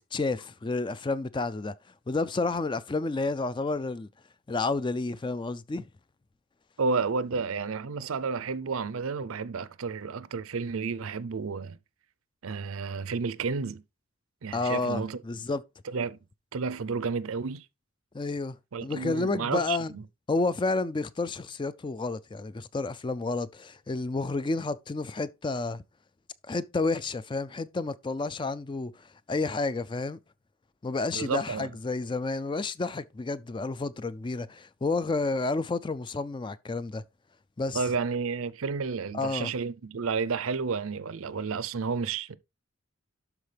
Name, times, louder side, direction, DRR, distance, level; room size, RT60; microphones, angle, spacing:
voice 1, 0.1-1.7 2.1-4.1 4.5-5.8 14.5-15.6 18.1-19.9 20.3-25.8 26.5-30.2 30.8-37.0 37.6-37.8 39.1-39.5, left 3 dB, 20° left, 0.3 m, -30 dB
voice 2, 6.8-11.8 12.4-13.8 14.4-15.2 15.9-16.2 16.5-17.7 18.7-20.0 31.1-31.7 37.7-42.4, right 5 dB, 75° right, 0.5 m, -31 dB
12.0 x 4.7 x 3.3 m
head